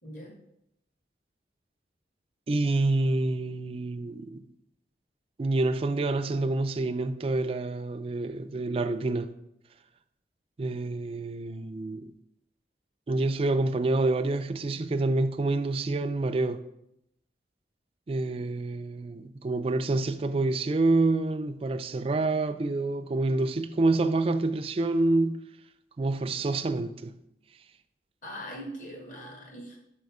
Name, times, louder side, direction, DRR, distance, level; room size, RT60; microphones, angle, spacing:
voice 1, 0.0-0.4 28.2-29.8, equal, 50° left, 1.4 m, -41 dB
voice 2, 2.5-4.4 5.4-9.3 10.6-12.1 13.1-16.6 18.1-25.4 26.0-27.1, right 2 dB, 30° right, 0.3 m, -27 dB
5.3 x 4.2 x 4.7 m
head